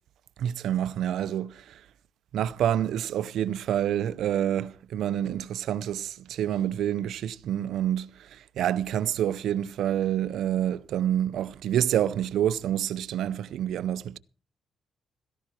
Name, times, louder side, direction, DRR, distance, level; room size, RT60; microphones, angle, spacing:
voice 1, 0.4-1.6 2.3-14.2, right 10 dB, 80° right, 0.7 m, -28 dB
16.5 x 14.5 x 4.5 m
cardioid pair, 95°, 0 cm